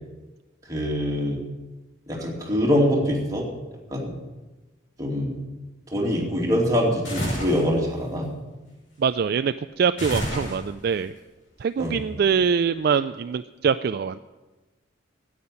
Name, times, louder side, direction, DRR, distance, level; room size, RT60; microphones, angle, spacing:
voice 1, 0.6-1.4 2.1-3.5 3.9-4.1 5.0-5.4 5.9-8.3 11.8-12.0, equal, 15° right, -2 dB, 2.6 m, -24 dB
sound 1, 7.0-7.7 10.0-10.9, equal, 65° left, 6.0 m, -29 dB
voice 2, 9.0-11.1 11.6-14.2, right 6 dB, 50° right, 11 dB, 0.3 m, -24 dB
9.6 x 8.8 x 9.8 m, 1.1 s
head